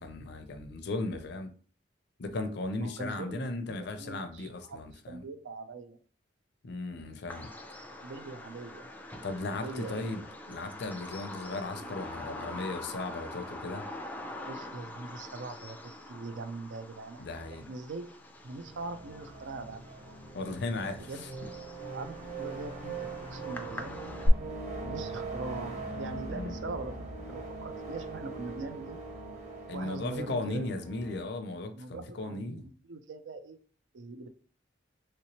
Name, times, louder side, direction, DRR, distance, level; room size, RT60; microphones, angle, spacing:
voice 1, 0.0-1.5 2.2-5.2 6.6-7.5 9.2-13.9 17.2-17.7 20.3-21.3 26.3-26.6 29.7-32.7, left 2 dB, 65° left, 0.5 m, -36 dB
voice 2, 2.8-6.0 8.0-8.9 9.5-10.2 14.4-17.2 17.5-18.0 18.4-19.8 21.0-21.3 21.9-23.0 23.3-23.9 24.8-29.0 29.7-30.7 31.7-33.6 33.9-34.3, right 3 dB, 80° right, 0.5 m, -42 dB
Bird vocalization bird call bird song, 7.3-24.3, left 1 dB, 10° left, 0.3 m, -43 dB
sound 1, 18.5-31.3, right 3 dB, 40° right, 1.1 m, -41 dB
3.1 x 2.9 x 2.9 m
head